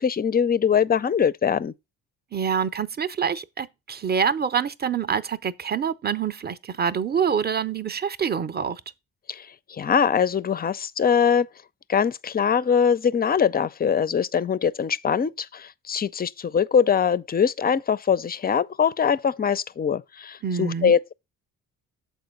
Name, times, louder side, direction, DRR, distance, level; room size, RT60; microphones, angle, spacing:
voice 1, 0.0-1.7 9.3-11.5 11.9-21.1, left 7 dB, 25° left, 0.4 m, -22 dB
voice 2, 2.3-8.8 20.4-20.9, right 7 dB, 25° right, 0.6 m, -26 dB
6.9 x 4.4 x 5.2 m
hypercardioid pair, 50°, 41 cm